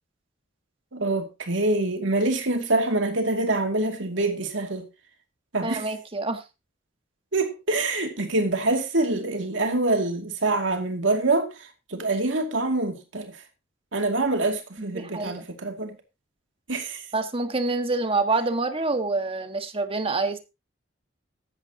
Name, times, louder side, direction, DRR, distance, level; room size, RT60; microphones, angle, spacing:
voice 1, 0.9-4.9 5.5-5.8 7.3-13.3 13.9-15.9 16.7-17.0, right 2 dB, 80° right, 2.5 m, -25 dB
voice 2, 5.6-6.4 14.8-15.5 17.1-20.4, right 3 dB, 30° right, 1.7 m, -27 dB
15.5 x 12.0 x 2.9 m
head